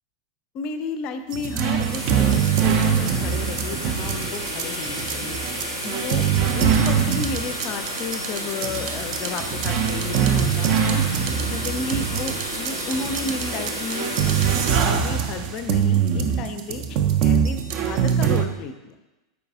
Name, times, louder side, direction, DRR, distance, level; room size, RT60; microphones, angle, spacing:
voice 1, 0.5-6.3 6.5-11.0 11.5-14.3 14.8-18.9, left 4 dB, 40° left, 9 dB, 0.4 m, -33 dB
sound 1, 1.3-18.5, right 8 dB, 40° right, 0.4 m, -23 dB
sound 2, 1.4-16.3, equal, 85° right, 1.0 m, -32 dB
4.7 x 4.6 x 2.5 m, 1.0 s
figure-of-eight pair, 90°, 2 cm